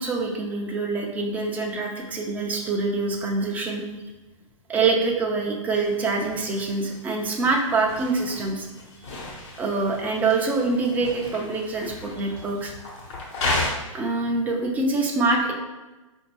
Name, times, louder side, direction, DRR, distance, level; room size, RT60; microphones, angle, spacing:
voice 1, 0.0-3.9 4.7-8.7 9.6-12.7 13.9-15.5, right 3 dB, 10° right, 0 dB, 0.4 m, -25 dB
sound 1, 5.7-13.7, left 2 dB, 55° left, 1.3 m, -34 dB
5.0 x 2.6 x 3.0 m, 1.1 s
hypercardioid pair, 130°, 17 cm